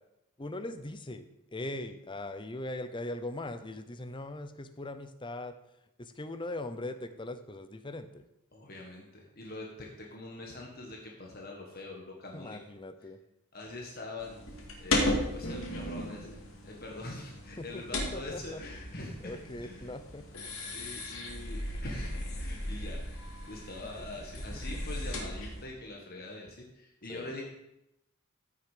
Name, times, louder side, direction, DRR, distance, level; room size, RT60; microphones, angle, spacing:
voice 1, 0.4-5.5 6.0-8.2 12.3-13.2 17.6-18.6 19.2-20.3 24.0-24.1 27.1-27.3, left 2 dB, 20° left, 10 dB, 0.7 m, -40 dB
voice 2, 8.5-12.6 13.5-14.4 14.8-16.4 16.6-19.9 20.6-23.0 23.5-27.4, left 2 dB, 45° left, -1 dB, 1.6 m, -44 dB
sound 1, 14.2-25.6, left 1 dB, 65° left, 2.5 m, -36 dB
15.0 x 6.5 x 5.0 m, 0.87 s
head